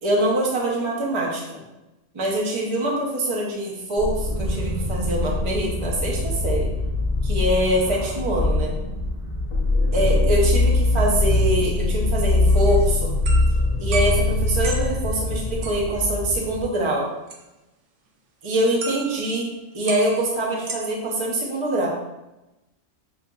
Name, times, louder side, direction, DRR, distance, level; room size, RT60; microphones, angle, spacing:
voice 1, 0.0-1.6 2.1-6.7 7.2-8.8 9.9-13.1 13.8-17.1 18.4-19.5 19.7-21.9, right 1 dB, 30° right, -3 dB, 0.6 m, -24 dB
sound 1, 4.0-16.6, left 2 dB, 35° left, 0.9 m, -22 dB
sound 2, 12.5-15.1 15.6-16.0 17.3-17.4 18.8-19.4 19.9-20.8, right 3 dB, 70° right, 0.9 m, -34 dB
5.6 x 2.5 x 2.3 m, 0.98 s
omnidirectional pair, 1.4 m